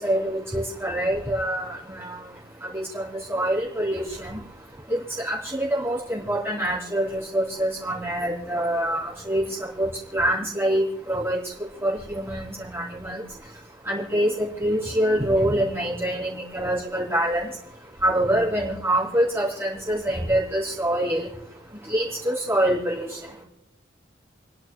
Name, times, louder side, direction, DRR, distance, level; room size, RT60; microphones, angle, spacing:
voice 1, 0.0-23.4, right 1 dB, 15° right, -5 dB, 3.5 m, -26 dB
29.5 x 10.5 x 2.3 m, 0.92 s
head